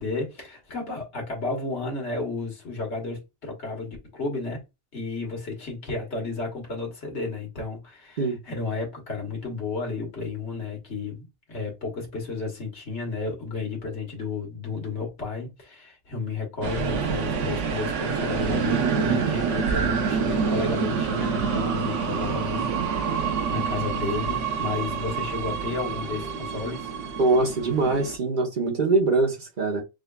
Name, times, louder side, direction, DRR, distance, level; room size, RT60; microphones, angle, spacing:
voice 1, 0.0-4.6 4.9-26.9, left 3 dB, 70° left, 1.6 m, -32 dB
sound 1, 16.6-28.2, right 6 dB, 85° right, 1.0 m, -27 dB
voice 2, 27.2-29.8, right 3 dB, 45° right, 0.9 m, -23 dB
6.3 x 2.3 x 2.2 m
omnidirectional pair, 1.2 m